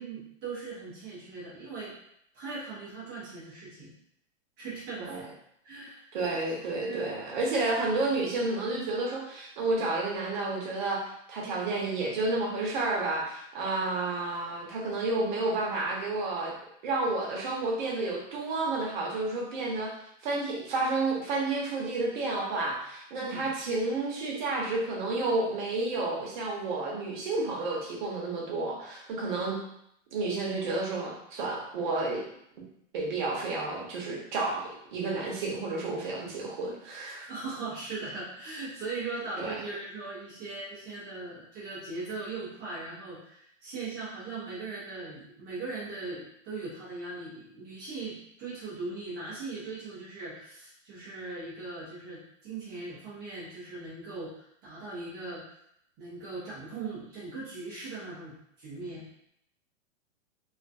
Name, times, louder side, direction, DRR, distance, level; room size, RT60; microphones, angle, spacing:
voice 1, 0.0-1.9 2.3-3.9 4.6-5.2 5.6-6.4 6.8-7.1 23.3-23.5 29.2-29.4 37.3-55.4 56.0-59.1, right 3 dB, 10° right, -10 dB, 0.4 m, -39 dB
voice 2, 6.1-16.5 16.8-19.9 20.2-29.6 30.1-32.2 32.9-37.3 39.4-39.5, right 2 dB, 40° right, -3 dB, 0.7 m, -31 dB
2.4 x 2.3 x 2.5 m, 0.73 s
hypercardioid pair, 160°, 38 cm